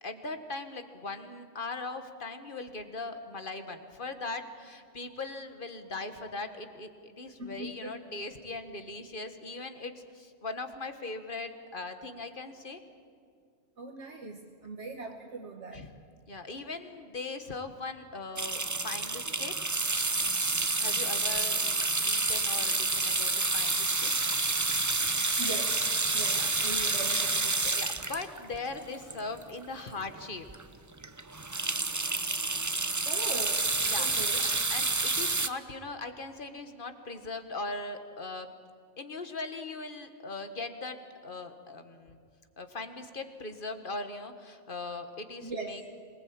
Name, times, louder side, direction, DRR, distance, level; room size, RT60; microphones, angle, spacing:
voice 1, 0.0-12.8 15.7-15.9 16.3-19.5 20.8-21.8 22.0-24.1 26.3-26.8 27.7-30.5 33.3-33.4 33.8-34.3 34.7-38.5 39.0-42.2 42.6-45.9, left 3 dB, 45° left, 8 dB, 1.7 m, -40 dB
voice 2, 7.4-8.0 13.8-15.8 25.4-25.9 26.1-27.8 33.0-34.5 45.4-45.8, right 3 dB, 70° right, 2 dB, 1.7 m, -40 dB
sound 1, 18.4-29.7 30.1-30.2 30.5-30.6 31.0-35.5, right 3 dB, 20° right, 0.6 m, -29 dB
26.0 x 19.5 x 8.8 m, 2.2 s
omnidirectional pair, 1.2 m